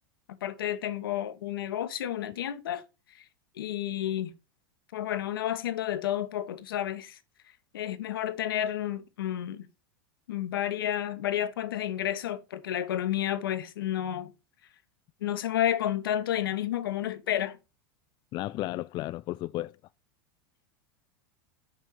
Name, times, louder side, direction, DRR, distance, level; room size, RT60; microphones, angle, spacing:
voice 1, 0.4-2.8 3.1-3.2 3.6-4.3 4.9-7.2 7.7-9.7 10.3-14.3 15.2-17.6, left 11 dB, 90° left, 1.2 m, -31 dB
voice 2, 18.3-19.7, left 17 dB, 40° left, 0.3 m, -33 dB
6.2 x 5.5 x 4.6 m
supercardioid pair, 115°, 12 cm